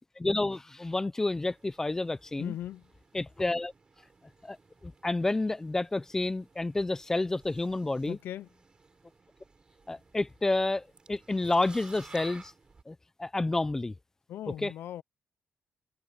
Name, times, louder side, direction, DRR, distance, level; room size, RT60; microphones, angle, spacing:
voice 1, 0.2-2.6 3.1-3.7 4.4-4.6 4.8-8.2 9.9-12.5 12.9-13.9 14.5-14.7, left 2 dB, 15° left, 0.6 m, -30 dB
sound 1, 1.2-12.8, right 4 dB, 25° right, 3.5 m, -56 dB
voice 2, 2.4-2.9 8.1-8.5 14.3-15.0, left 12 dB, 85° left, 0.5 m, -39 dB
wide cardioid pair, 155°, 4 cm